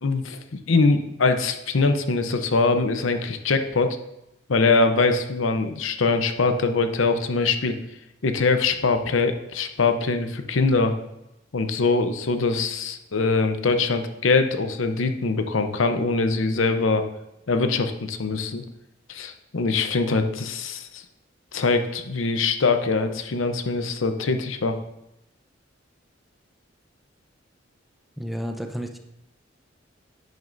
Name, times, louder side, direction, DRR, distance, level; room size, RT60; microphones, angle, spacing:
voice 1, 0.0-4.0 4.5-7.8 8.2-11.0 11.5-17.1 17.5-18.6 19.1-21.0 21.5-24.8, left 3 dB, 80° left, 8 dB, 0.7 m, -23 dB
voice 2, 28.2-29.0, equal, ahead, 4 dB, 0.7 m, -31 dB
10.5 x 9.3 x 2.6 m, 0.88 s
head